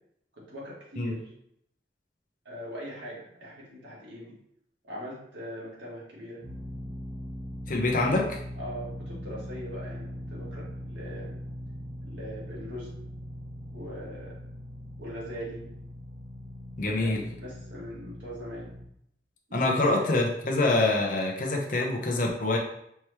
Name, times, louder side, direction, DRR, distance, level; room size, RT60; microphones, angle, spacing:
voice 1, 0.3-1.3 2.4-4.3 4.8-6.5 7.9-8.1 8.5-11.4 12.0-13.0 13.7-14.5 15.0-15.7 16.8-18.8 19.5-20.1, equal, 85° right, -5 dB, 1.7 m, -41 dB
sound 1, 6.4-18.9, equal, 15° right, 1.0 m, -40 dB
voice 2, 7.7-8.2 16.8-17.2 19.5-22.6, left 2 dB, 50° left, 0 dB, 0.8 m, -25 dB
4.5 x 3.0 x 3.2 m, 0.74 s
head